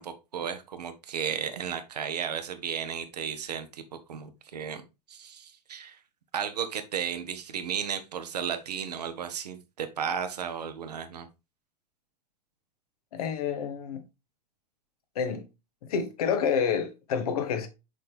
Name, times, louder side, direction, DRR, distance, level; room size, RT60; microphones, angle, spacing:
voice 1, 0.0-4.8 5.1-6.0 6.3-11.3, right 7 dB, 75° right, 1.1 m, -34 dB
voice 2, 13.1-14.0 15.1-15.4 15.9-17.7, left 7 dB, 60° left, 1.2 m, -28 dB
6.3 x 4.3 x 3.4 m
figure-of-eight pair, 90°, 21 cm